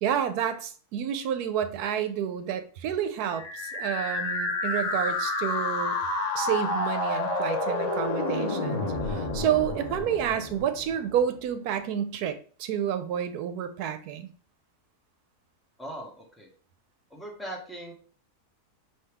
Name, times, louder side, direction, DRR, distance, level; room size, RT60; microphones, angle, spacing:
voice 1, 0.0-6.0 6.3-14.3, right 9 dB, 85° right, 10 dB, 1.1 m, -29 dB
sound 1, 3.3-11.2, left 2 dB, 55° left, 0.4 m, -30 dB
voice 2, 15.8-16.5 17.1-17.9, right 1 dB, ahead, -1 dB, 0.8 m, -39 dB
4.8 x 2.9 x 3.3 m, 0.42 s
omnidirectional pair, 1.6 m